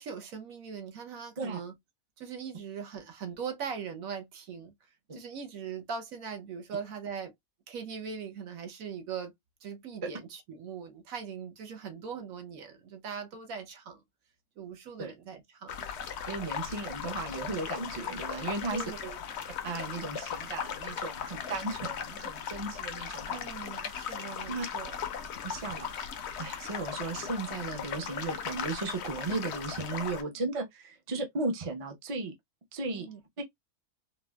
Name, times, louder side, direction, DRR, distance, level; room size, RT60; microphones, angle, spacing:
voice 1, 0.0-1.7 2.2-4.7 5.1-7.3 7.7-9.3 9.6-14.0 14.6-15.8 18.7-19.2 23.3-24.9 32.9-33.2, right 6 dB, 70° right, 1.1 m, -40 dB
sound 1, 15.7-30.2, left 7 dB, 60° left, 0.7 m, -38 dB
voice 2, 16.3-18.8 19.6-23.5 24.5-24.7 25.4-25.9 26.4-32.3 32.7-33.1 33.4-33.5, right 3 dB, 35° right, 0.6 m, -35 dB
4.1 x 2.1 x 2.2 m
omnidirectional pair, 1.6 m